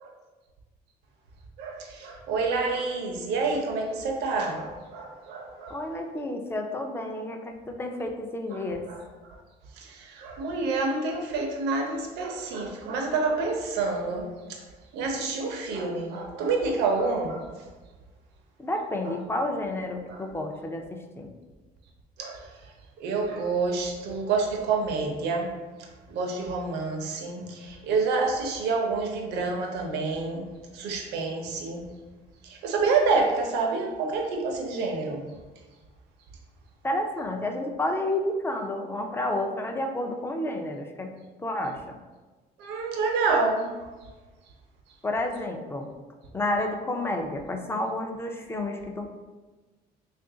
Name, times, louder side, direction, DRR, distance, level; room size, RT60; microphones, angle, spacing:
voice 1, 1.6-5.8 8.5-9.0 9.8-14.6 14.9-17.5 20.1-20.3 22.2-22.5 23.0-25.5 26.1-30.5 30.7-31.8 32.4-35.3 42.6-43.7, right 4 dB, 80° right, 2 dB, 0.7 m, -28 dB
voice 2, 5.7-8.9 18.6-21.3 36.8-41.1 41.4-42.0 45.0-45.9 46.3-49.1, left 1 dB, 15° left, 3 dB, 0.4 m, -30 dB
3.2 x 2.5 x 3.7 m, 1.3 s
cardioid pair, 110°, 17 cm